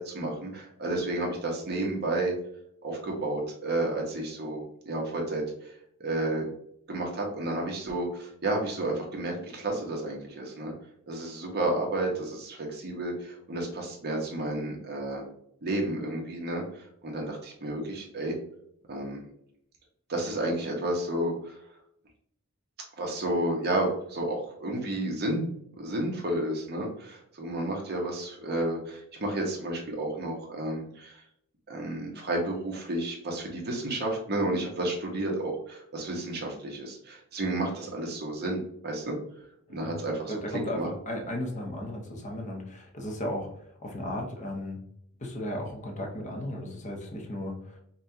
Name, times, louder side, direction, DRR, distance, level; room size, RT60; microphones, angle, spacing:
voice 1, 0.0-2.3 2.8-5.7 6.0-6.5 6.9-10.7 11.1-15.3 15.6-16.6 17.0-18.3 18.9-19.2 20.1-21.6 23.0-25.5 25.8-31.2 31.7-39.2 39.7-40.3 40.7-40.9, right 1 dB, 45° right, 0 dB, 1.1 m, -31 dB
voice 2, 40.3-43.5 43.8-44.8 45.2-47.8, left 1 dB, 35° left, 1 dB, 0.9 m, -35 dB
5.4 x 2.4 x 2.8 m, 0.70 s
head